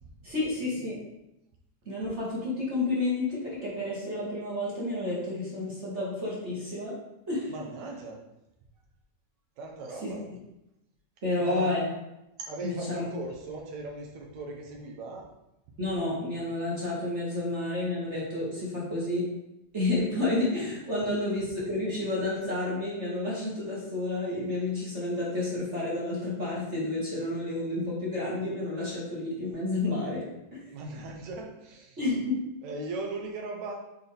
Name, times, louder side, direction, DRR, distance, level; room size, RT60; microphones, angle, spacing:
voice 1, 0.2-1.0 1.9-7.0 7.3-7.5 10.0-10.1 11.2-11.8 12.6-13.1 15.8-19.3 19.7-30.6 32.0-32.4, left 2 dB, 25° right, -7 dB, 1.9 m, -30 dB
voice 2, 7.5-8.2 9.6-10.2 11.4-11.7 12.4-15.3 30.7-32.0 32.6-33.8, right 3 dB, 70° right, 0 dB, 2.4 m, -38 dB
7.6 x 4.3 x 3.5 m, 0.89 s
omnidirectional pair, 3.4 m